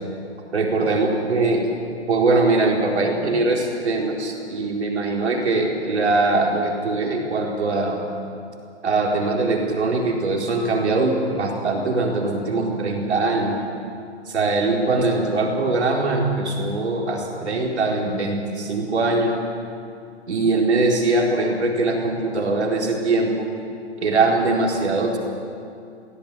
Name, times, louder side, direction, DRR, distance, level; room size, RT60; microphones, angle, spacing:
voice 1, 0.5-1.7 2.1-8.0 8.8-13.6 14.3-19.4 20.3-23.5 24.0-25.2, right 3 dB, 70° right, -1 dB, 4.4 m, -21 dB
20.0 x 16.5 x 9.7 m, 2.4 s
hypercardioid pair, 175°, 35 cm